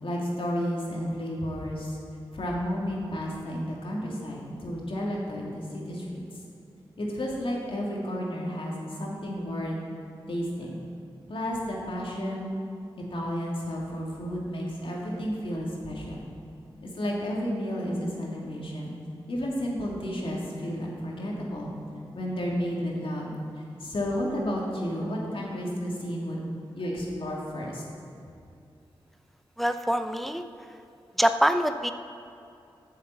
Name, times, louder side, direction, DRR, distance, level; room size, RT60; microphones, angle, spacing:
voice 1, 0.0-2.0 2.3-6.2 7.0-8.7 9.0-9.8 10.3-10.8 11.3-12.6 13.1-16.2 16.8-18.9 19.3-21.7 22.1-23.3 23.8-26.4 26.7-27.8, equal, 65° left, -3 dB, 2.6 m, -32 dB
voice 2, 29.6-30.4 31.2-31.9, equal, ahead, 8 dB, 0.6 m, -24 dB
9.6 x 7.4 x 7.0 m, 2.6 s
cardioid pair, 45°, 10 cm